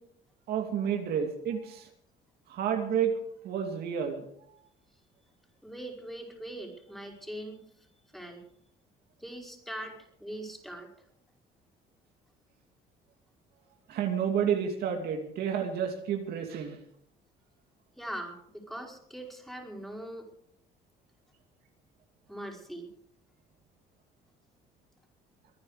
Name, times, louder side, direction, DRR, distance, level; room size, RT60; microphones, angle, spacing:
voice 1, 0.5-1.9 2.5-3.2 3.4-4.2 13.9-16.8, right 8 dB, 70° right, 4 dB, 2.6 m, -30 dB
voice 2, 5.6-7.6 8.1-8.4 9.2-10.9 18.0-20.2 22.3-22.9, right 1 dB, ahead, 0 dB, 5.1 m, -41 dB
23.5 x 9.8 x 5.0 m, 0.68 s
cardioid pair, 110°, 17 cm